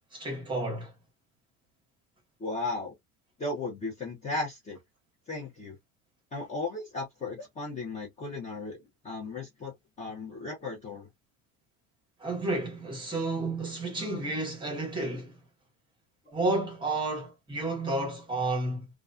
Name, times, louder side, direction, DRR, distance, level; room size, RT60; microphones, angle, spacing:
voice 1, 0.1-0.9 12.2-15.4 16.3-18.9, right 2 dB, 15° right, 1.0 m, -31 dB
voice 2, 2.4-2.9 3.4-4.8 5.3-5.7 6.3-8.8 9.0-11.1 14.0-14.1, left 3 dB, 20° left, 0.7 m, -35 dB
2.3 x 2.3 x 2.4 m
cardioid pair, 175°, 37 cm